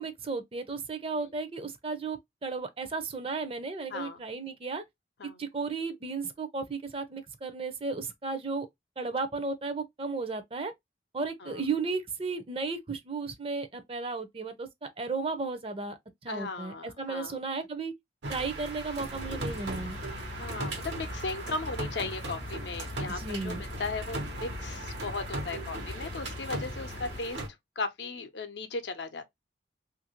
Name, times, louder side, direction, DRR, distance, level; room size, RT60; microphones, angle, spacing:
voice 1, 0.0-4.8 5.4-8.7 9.0-10.7 11.1-17.9 18.3-20.0 23.1-23.6, right 4 dB, 30° right, 0.5 m, -34 dB
voice 2, 3.9-4.2 5.2-5.4 11.4-11.6 16.3-17.4 20.4-27.4 27.8-29.2, left 3 dB, 80° left, 0.6 m, -37 dB
sound 1, 18.2-27.5, right 2 dB, 85° right, 1.0 m, -38 dB
sound 2, 19.1-27.2, left 3 dB, 35° left, 0.3 m, -42 dB
2.7 x 2.5 x 2.8 m
head